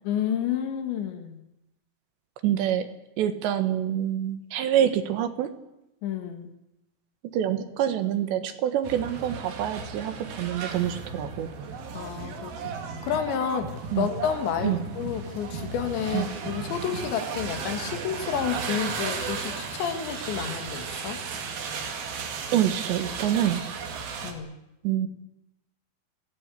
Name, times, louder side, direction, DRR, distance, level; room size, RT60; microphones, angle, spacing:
voice 1, 0.0-1.4 6.0-6.5 11.9-21.2 24.2-24.6, left 8 dB, 85° left, 8 dB, 4.2 m, -30 dB
voice 2, 2.4-2.9 3.2-5.5 7.3-11.7 13.9-14.1 14.6-14.8 16.1-16.3 17.9-18.0 22.5-23.7 24.8-25.1, right 10 dB, 80° right, 9 dB, 3.8 m, -26 dB
sound 1, 8.8-24.3, right 5 dB, 60° right, 3.9 m, -35 dB
26.0 x 17.5 x 8.5 m, 0.91 s
omnidirectional pair, 5.0 m